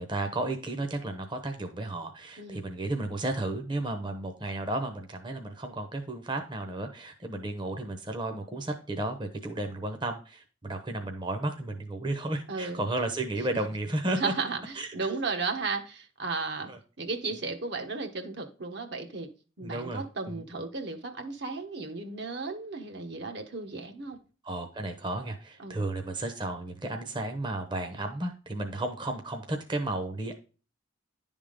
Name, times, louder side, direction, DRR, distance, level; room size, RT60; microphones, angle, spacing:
voice 1, 0.0-14.4 14.7-15.2 16.7-16.8 19.6-20.5 24.4-30.3, right 2 dB, 25° right, 4 dB, 0.8 m, -33 dB
voice 2, 2.4-2.7 12.5-12.8 14.2-16.7 17.0-19.3 19.6-24.2 25.6-25.8, right 4 dB, 60° right, 4 dB, 1.2 m, -34 dB
10.5 x 3.7 x 5.1 m, 0.36 s
head